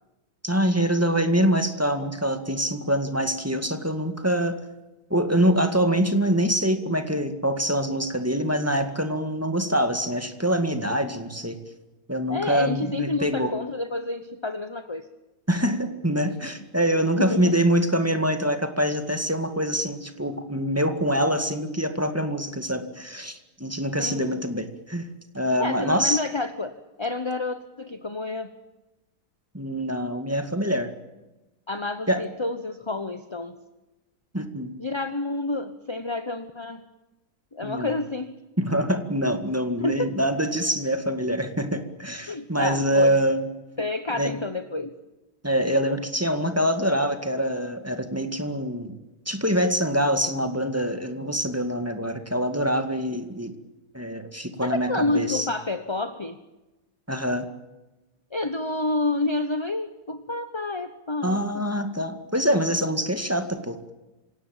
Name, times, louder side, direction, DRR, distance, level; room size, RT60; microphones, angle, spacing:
voice 1, 0.4-4.6 5.1-11.6 12.1-13.5 15.5-25.1 25.3-26.2 29.5-30.9 32.1-32.2 34.3-34.8 37.6-37.9 38.6-43.5 44.1-44.4 45.4-49.0 49.3-53.5 53.9-55.5 57.1-57.5 61.2-63.9, equal, 10° right, 8 dB, 2.0 m, -25 dB
voice 2, 12.3-15.1 17.1-17.6 24.0-24.4 25.6-26.7 27.0-28.5 31.7-33.5 34.8-36.9 37.5-38.3 39.8-40.2 42.3-43.1 43.8-44.9 54.6-56.4 58.3-61.7, left 2 dB, 20° left, 10 dB, 1.0 m, -29 dB
26.0 x 17.5 x 9.0 m, 1.1 s
omnidirectional pair, 1.7 m